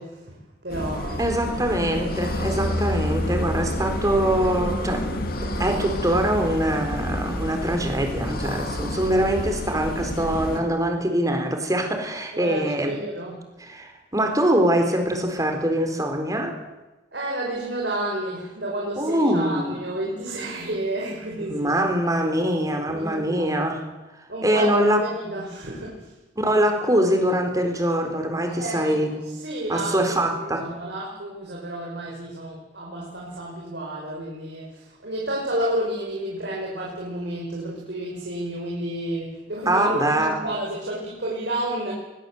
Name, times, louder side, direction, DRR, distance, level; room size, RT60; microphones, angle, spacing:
voice 1, 0.0-1.3 12.3-13.3 17.1-21.9 22.9-23.6 24.3-26.1 28.5-29.9 30.4-41.9, right 1 dB, 60° right, -3 dB, 5.4 m, -31 dB
sound 1, 0.7-10.6, left 1 dB, 50° left, 2.9 m, -29 dB
voice 2, 1.2-5.2 5.6-12.9 13.6-16.6 19.0-19.8 21.5-23.8 24.4-25.0 26.4-29.2 29.7-30.7 39.7-40.4, right 1 dB, 20° right, 5 dB, 4.1 m, -23 dB
21.5 x 21.0 x 8.0 m, 1.1 s
head